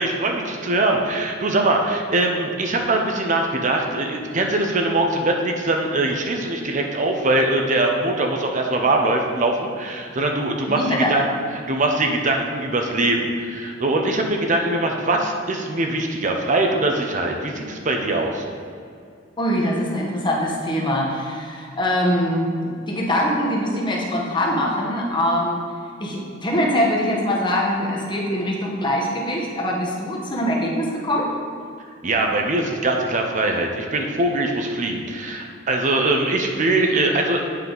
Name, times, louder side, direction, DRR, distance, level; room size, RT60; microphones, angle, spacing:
voice 1, 0.0-11.3 11.7-18.4 32.0-37.5, right 2 dB, 40° right, 2 dB, 0.7 m, -22 dB
voice 2, 10.7-11.1 19.4-25.6 26.0-31.3, equal, 25° left, -2 dB, 1.1 m, -23 dB
8.5 x 5.4 x 3.9 m, 2.3 s
head